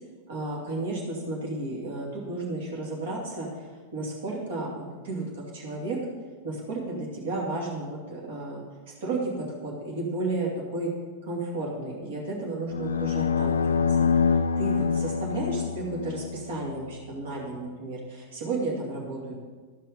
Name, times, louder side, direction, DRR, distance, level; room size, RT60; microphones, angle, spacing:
voice 1, 0.3-6.0 6.4-10.9 11.2-14.1 14.6-19.3, right 2 dB, 55° right, -3 dB, 2.4 m, -33 dB
sound 1, 12.7-17.0, left 6 dB, 75° left, 0.4 m, -26 dB
14.0 x 5.5 x 5.2 m, 1.4 s
figure-of-eight pair, 90°, 0 cm